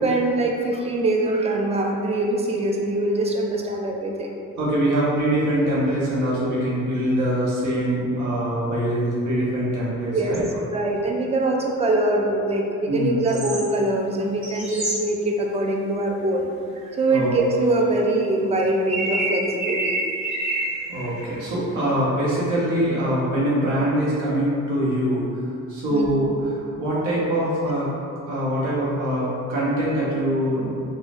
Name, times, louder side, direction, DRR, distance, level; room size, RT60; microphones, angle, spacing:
voice 1, 0.0-4.3 10.1-10.4 10.7-16.5 16.8-20.0 25.9-26.1, right 2 dB, 20° right, 0 dB, 0.3 m, -23 dB
voice 2, 4.6-10.4 12.9-13.2 17.1-17.3 20.9-25.4 25.7-27.9 28.3-30.7, right 1 dB, 80° right, -7 dB, 1.0 m, -23 dB
sound 1, 13.3-13.6 14.4-15.0 18.6-18.7 18.9-21.4 21.9-22.0, right 2 dB, 45° right, 1.4 m, -27 dB
3.1 x 2.3 x 2.5 m, 2.5 s
cardioid pair, 90°, 30 cm